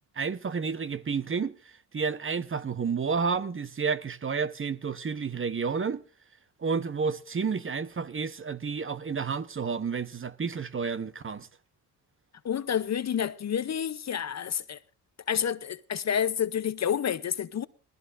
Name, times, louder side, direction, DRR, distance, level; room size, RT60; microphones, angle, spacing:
voice 1, 0.2-1.5 1.9-6.0 6.6-11.5, right 5 dB, 30° right, 0.9 m, -30 dB
voice 2, 12.4-14.8 15.3-17.7, left 8 dB, 40° left, 0.7 m, -29 dB
20.5 x 15.0 x 2.5 m
cardioid pair, 75°, 40 cm